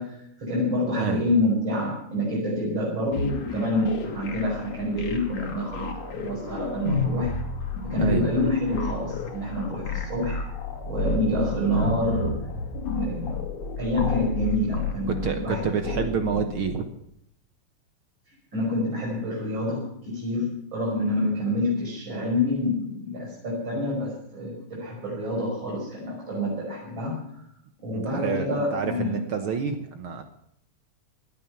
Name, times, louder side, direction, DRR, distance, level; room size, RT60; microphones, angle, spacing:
voice 1, 0.0-7.3 7.8-10.4 10.9-12.4 13.0-13.4 13.8-16.0 18.3-27.4 27.8-29.2, left 1 dB, 40° right, -6 dB, 6.4 m, -27 dB
sound 1, 3.1-16.7, left 3 dB, 75° left, 3.7 m, -31 dB
voice 2, 15.1-16.8 27.9-30.2, right 6 dB, 60° right, 7 dB, 1.6 m, -28 dB
18.5 x 12.5 x 5.9 m, 0.73 s
omnidirectional pair, 3.4 m